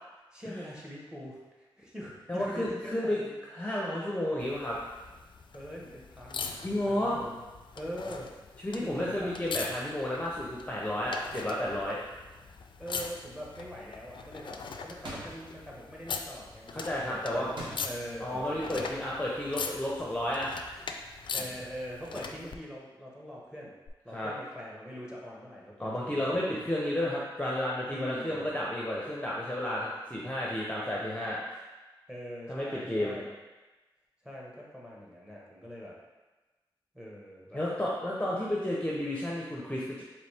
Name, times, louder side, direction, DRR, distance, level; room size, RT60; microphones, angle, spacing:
voice 1, 0.3-3.3 5.5-7.4 7.8-8.3 8.8-9.3 12.8-19.0 21.3-23.7 24.0-26.7 27.9-28.4 32.1-33.3 34.2-36.0 36.9-37.6, equal, 10° right, -4 dB, 1.1 m, -43 dB
voice 2, 2.3-3.2 3.5-4.8 6.6-7.2 8.6-12.0 16.7-17.5 18.2-20.5 24.1-24.3 25.8-31.4 32.5-33.2 37.5-40.0, left 1 dB, 15° left, -5 dB, 0.7 m, -32 dB
sound 1, 4.4-22.6 23.9-24.0, left 5 dB, 65° left, 0.4 m, -42 dB
sound 2, 15.0-15.5 17.6-18.2, right 1 dB, 65° right, 1.0 m, -41 dB
4.0 x 3.2 x 3.4 m, 1.2 s
cardioid pair, 65°, 9 cm